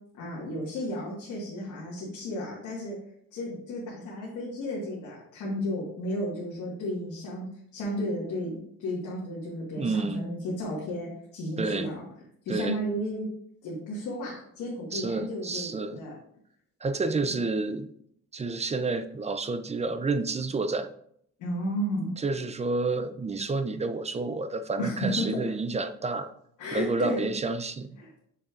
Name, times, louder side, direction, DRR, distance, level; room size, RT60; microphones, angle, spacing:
voice 1, 0.2-3.0 3.3-7.5 7.7-12.0 12.4-13.2 13.6-16.1 21.4-22.1 24.8-25.4 26.6-27.2 28.0-28.3, equal, 85° left, -5 dB, 1.7 m, -33 dB
voice 2, 9.8-10.3 11.6-11.9 12.5-12.8 14.9-16.0 16.8-17.9 18.3-20.9 22.2-26.3 26.7-28.0, right 3 dB, 20° right, 10 dB, 0.4 m, -29 dB
6.6 x 6.0 x 2.5 m, 0.69 s
cardioid pair, 90°, 30 cm